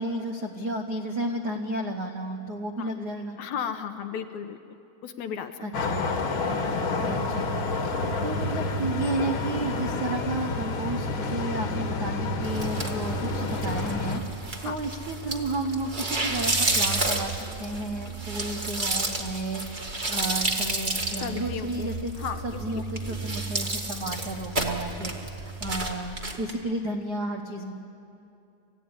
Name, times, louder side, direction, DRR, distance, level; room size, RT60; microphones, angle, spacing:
voice 1, 0.0-3.4 5.6-6.0 7.0-14.2 14.6-19.8 20.1-22.1 22.4-27.7, right 1 dB, 75° right, 3 dB, 0.9 m, -32 dB
voice 2, 3.4-4.8 5.0-5.9 8.3-8.4 14.6-14.8 21.2-22.8, left 7 dB, 70° left, 8 dB, 2.0 m, -35 dB
sound 1, 5.7-14.2, left 3 dB, 50° left, 2.0 m, -29 dB
sound 2, 6.7-25.9, right 5 dB, 90° right, 3.4 m, -39 dB
sound 3, 12.4-26.5, right 2 dB, 25° right, 1.0 m, -31 dB
26.5 x 16.0 x 9.8 m, 2.8 s
omnidirectional pair, 3.8 m